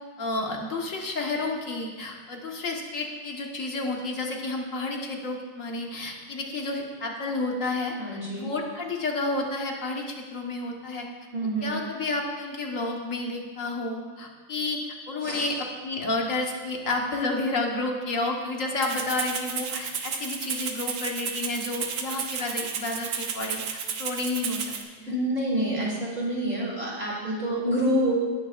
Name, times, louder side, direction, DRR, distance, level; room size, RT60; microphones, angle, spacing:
voice 1, 0.2-7.9 8.3-11.1 11.6-14.8 15.1-15.6 15.8-23.6 24.0-25.1, left 2 dB, 45° left, 1 dB, 1.5 m, -30 dB
voice 2, 8.0-8.5 11.3-11.7 15.2-15.5 25.1-28.1, right 1 dB, 35° right, -8 dB, 3.3 m, -27 dB
Rattle (instrument), 18.8-24.8, right 7 dB, 75° right, 1.6 m, -32 dB
19.0 x 10.0 x 2.5 m, 1.5 s
omnidirectional pair, 2.1 m